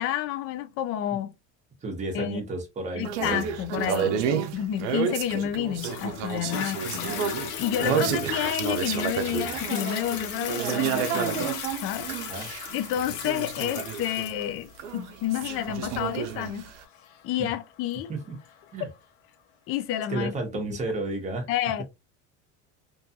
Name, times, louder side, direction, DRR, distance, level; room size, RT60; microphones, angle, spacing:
voice 1, 0.0-1.3 2.1-2.4 3.0-4.2 4.5-7.1 7.6-11.5 11.8-12.1 12.7-16.7 17.2-18.1 19.7-20.3 21.5-21.8, left 11 dB, 40° left, 0.4 m, -30 dB
voice 2, 1.8-3.1 7.8-8.2 12.3-12.5 17.4-17.5 18.1-18.4 18.7-18.9 20.1-21.5, right 2 dB, 20° right, 0.9 m, -32 dB
sound 1, 3.0-14.5 14.8-16.8, right 7 dB, 85° right, 0.6 m, -30 dB
Toilet flush, 5.8-18.8 19.4-19.5, left 8 dB, 75° left, 0.8 m, -37 dB
2.6 x 2.3 x 2.6 m
cardioid pair, 140°, 34 cm